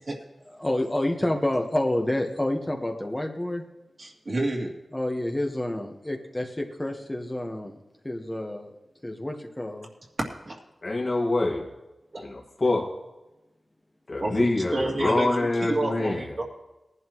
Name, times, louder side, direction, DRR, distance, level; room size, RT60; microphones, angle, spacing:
voice 1, 0.6-3.6 4.9-8.7 9.0-9.9, left 1 dB, 20° left, 2 dB, 1.3 m, -28 dB
voice 2, 4.0-4.7 10.5-10.6 12.1-12.3 14.2-15.3 15.6-16.4, right 2 dB, 55° right, 0 dB, 2.6 m, -29 dB
voice 3, 10.8-11.7 12.2-12.9 14.1-16.4, left 2 dB, 50° left, -2 dB, 2.1 m, -25 dB
19.0 x 11.0 x 3.1 m, 0.99 s
cardioid pair, 55°, 0 cm